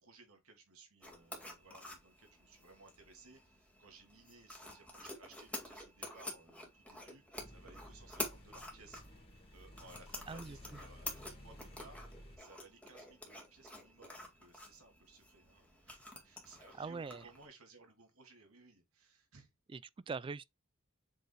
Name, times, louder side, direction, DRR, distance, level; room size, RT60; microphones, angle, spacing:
voice 1, 0.0-9.0 9.5-12.0 12.4-19.5, right 3 dB, 85° right, 2.8 m, -60 dB
sound 1, 1.0-17.5, left 1 dB, 5° left, 2.2 m, -49 dB
sound 2, 7.4-12.4, left 1 dB, 25° left, 2.5 m, -55 dB
voice 2, 10.3-10.8 16.8-17.3 19.7-20.4, right 4 dB, 25° right, 0.3 m, -43 dB
7.8 x 5.2 x 2.3 m
head